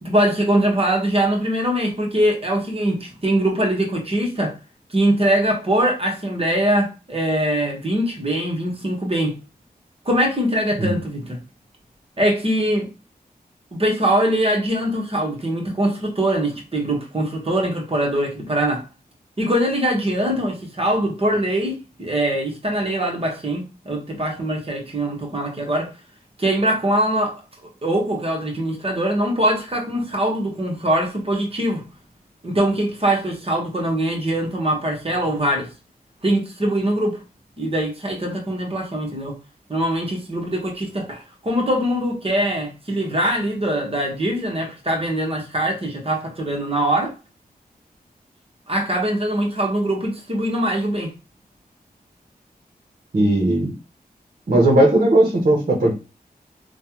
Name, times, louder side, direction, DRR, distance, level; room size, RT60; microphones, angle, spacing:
voice 1, 0.0-4.5 4.9-9.4 10.0-11.4 12.2-12.9 13.7-18.8 19.4-25.9 26.4-31.8 32.4-35.7 36.2-37.2 37.6-39.4 39.7-47.1 48.7-51.1, right 1 dB, 35° right, 1.3 m, -22 dB
voice 2, 53.1-53.7 54.5-55.9, right 1 dB, 55° right, 1.0 m, -17 dB
3.2 x 2.3 x 2.9 m
cardioid pair, 55°, 16 cm